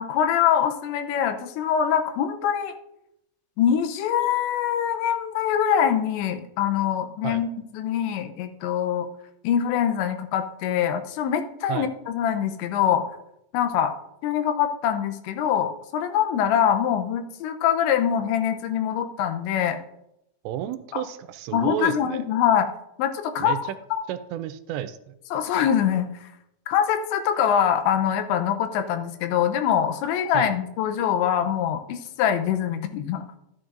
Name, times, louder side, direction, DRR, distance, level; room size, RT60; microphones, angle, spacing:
voice 1, 0.0-2.8 3.6-9.1 9.4-13.0 13.5-13.9 14.2-19.8 20.9-21.0 21.5-22.7 23.0-23.6 23.9-24.0 25.3-26.3 26.7-33.2, left 9 dB, 85° left, 8 dB, 3.0 m, -24 dB
voice 2, 20.4-22.2 23.4-23.6 24.1-25.1 30.3-30.5, right 12 dB, 85° right, 12 dB, 2.7 m, -31 dB
12.5 x 9.9 x 2.5 m, 0.82 s
omnidirectional pair, 5.1 m